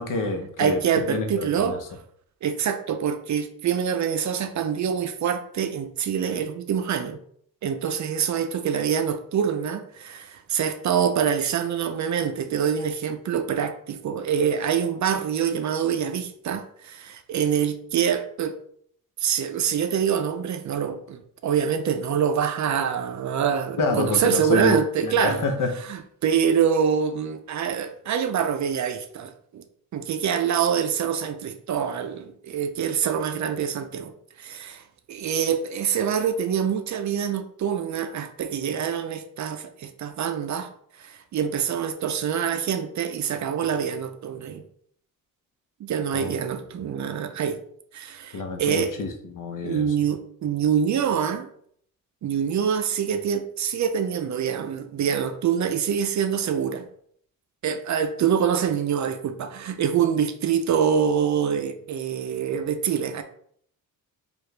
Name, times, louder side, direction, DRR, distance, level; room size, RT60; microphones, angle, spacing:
voice 1, 0.0-0.8 1.1-1.8 23.8-24.8 25.0-25.7 46.1-46.3 48.3-49.9, left 3 dB, 60° left, 5 dB, 0.8 m, -27 dB
voice 2, 0.6-1.8 2.4-7.2 7.6-18.6 19.2-25.5 25.9-29.6 29.9-34.1 34.4-40.7 41.0-44.6 45.8-47.6 47.9-48.9 49.6-51.5 52.2-56.9 57.6-63.2, right 8 dB, 55° right, 8 dB, 0.5 m, -25 dB
4.6 x 2.5 x 3.2 m, 0.64 s
wide cardioid pair, 135°, 36 cm